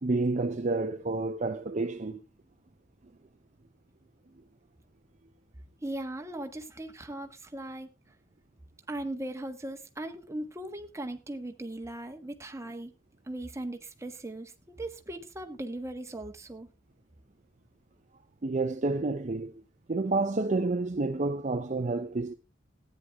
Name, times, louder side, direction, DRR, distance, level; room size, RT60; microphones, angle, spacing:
voice 1, 0.0-2.2 18.4-19.5 19.9-22.3, right 3 dB, 40° right, 0.6 m, -29 dB
voice 2, 5.8-7.9 8.9-12.9 13.3-16.7, right 1 dB, 15° right, 1.3 m, -38 dB
14.5 x 9.5 x 3.5 m
head